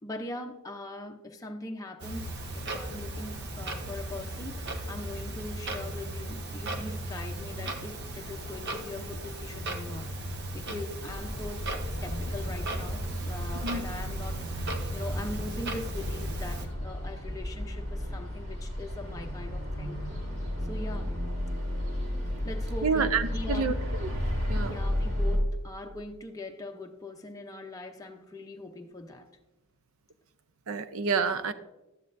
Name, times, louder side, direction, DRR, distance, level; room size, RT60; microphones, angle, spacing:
voice 1, 0.0-20.0 20.6-21.2 22.4-23.7 24.5-29.3, left 1 dB, 15° left, 0.7 m, -41 dB
Clock, 2.0-16.7, right 1 dB, 50° right, 1.0 m, -36 dB
sound 1, 11.1-25.4, left 1 dB, 85° right, 3.4 m, -33 dB
voice 2, 22.8-24.1 24.5-24.8 30.7-31.5, right 5 dB, 70° right, 0.6 m, -28 dB
12.5 x 9.7 x 2.6 m
head